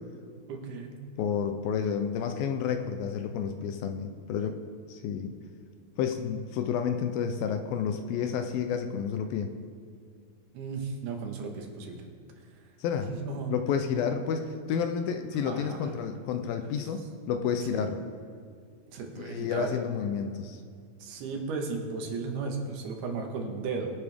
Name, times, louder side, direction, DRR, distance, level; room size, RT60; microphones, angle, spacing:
voice 1, 0.5-1.0 10.5-12.0 13.1-13.5 15.4-15.9 17.7-17.9 18.9-19.8 21.0-23.9, right 4 dB, 80° right, 2 dB, 3.4 m, -35 dB
voice 2, 1.2-4.6 4.9-5.3 6.0-9.5 12.8-13.1 13.5-18.0 19.2-20.6, left 7 dB, 80° left, 6 dB, 2.3 m, -30 dB
23.0 x 8.3 x 3.5 m, 2.2 s
omnidirectional pair, 4.5 m